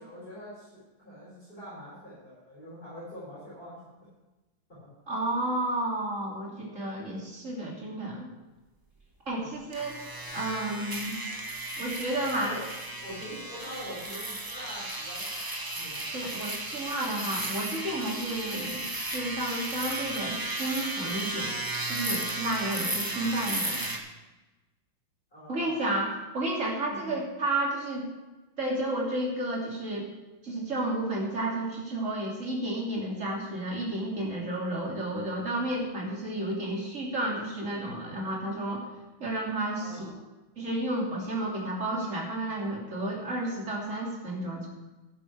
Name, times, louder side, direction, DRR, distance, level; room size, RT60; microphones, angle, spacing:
voice 1, 0.0-3.8 9.4-9.6 12.2-12.6 13.0-15.5 15.7-16.1 25.3-25.9 26.9-27.2 39.8-40.1, equal, 25° left, -11 dB, 5.7 m, -44 dB
voice 2, 5.1-8.3 9.3-10.0 10.3-11.2 11.8-12.5 16.1-18.8 19.1-21.5 21.9-23.9 25.5-28.1 28.6-30.1 30.4-38.8 39.2-40.1 40.6-44.7, right 1 dB, 40° right, -2 dB, 3.0 m, -31 dB
sound 1, 9.7-24.0, right 2 dB, 15° right, 0.8 m, -34 dB
12.5 x 10.5 x 4.7 m, 1.1 s
omnidirectional pair, 2.2 m